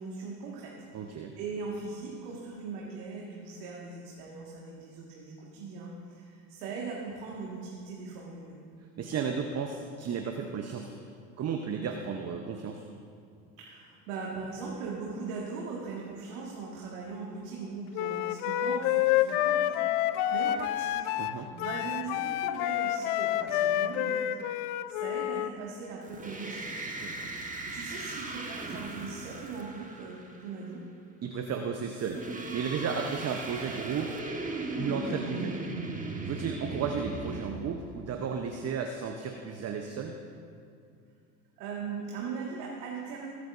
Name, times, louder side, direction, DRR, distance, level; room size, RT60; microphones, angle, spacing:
voice 1, 0.0-8.6 13.6-21.0 21.5-26.7 27.7-30.9 41.6-43.3, right 4 dB, 75° right, -3 dB, 1.9 m, -40 dB
voice 2, 0.9-1.3 9.0-10.9 11.4-12.9 21.2-21.5 26.9-27.3 31.2-32.3 32.5-34.3 34.8-35.6 36.3-40.2, right 6 dB, 35° right, 4 dB, 0.8 m, -34 dB
Wind instrument woodwind instrument, 17.9-25.5, left 12 dB, 60° left, 0.6 m, -28 dB
sound 1, 26.0-30.5 32.0-37.5, right 2 dB, 15° right, 1.4 m, -37 dB
22.0 x 8.1 x 2.6 m, 2.4 s
hypercardioid pair, 75°, 48 cm